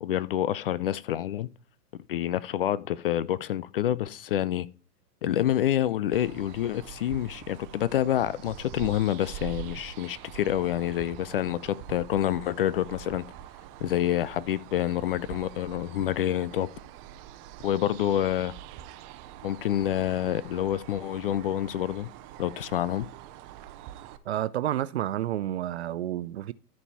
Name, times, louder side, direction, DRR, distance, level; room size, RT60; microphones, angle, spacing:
voice 1, 0.0-1.5 2.1-4.7 5.2-13.2 13.8-16.7 17.6-18.5 19.4-22.1 22.4-23.1, left 12 dB, 35° left, 0.5 m, -27 dB
sound 1, 6.1-24.2, right 11 dB, 30° right, 0.9 m, -44 dB
voice 2, 24.3-26.5, right 12 dB, 45° right, 0.5 m, -30 dB
13.5 x 5.4 x 4.2 m
figure-of-eight pair, 100°, 48 cm